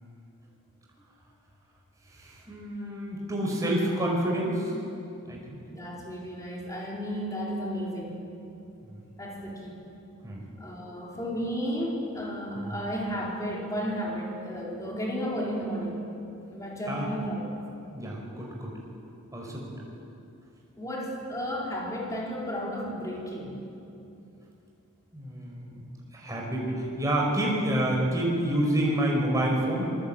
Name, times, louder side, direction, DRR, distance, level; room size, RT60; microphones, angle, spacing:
voice 1, 2.1-4.7 5.3-5.6 8.8-9.0 10.2-10.4 12.6-12.8 16.9-17.1 17.8-18.8 19.3-19.7 25.1-25.9 26.1-30.0, right 1 dB, 15° right, -2 dB, 5.0 m, -28 dB
voice 2, 5.7-8.2 9.2-9.8 10.6-16.0 16.5-17.6 20.8-23.6, equal, 15° left, -3 dB, 4.5 m, -33 dB
26.0 x 21.0 x 8.9 m, 2.8 s
head